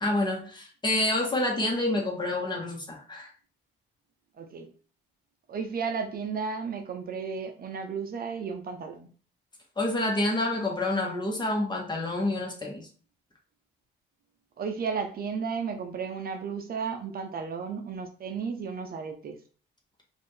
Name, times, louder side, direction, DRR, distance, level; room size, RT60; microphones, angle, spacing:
voice 1, 0.0-3.3 9.8-12.9, left 2 dB, 20° left, -1 dB, 1.2 m, -28 dB
voice 2, 4.4-4.7 5.5-9.1 14.6-19.4, right 5 dB, 50° right, 5 dB, 0.6 m, -33 dB
4.1 x 2.6 x 3.2 m, 0.41 s
cardioid pair, 90°, 20 cm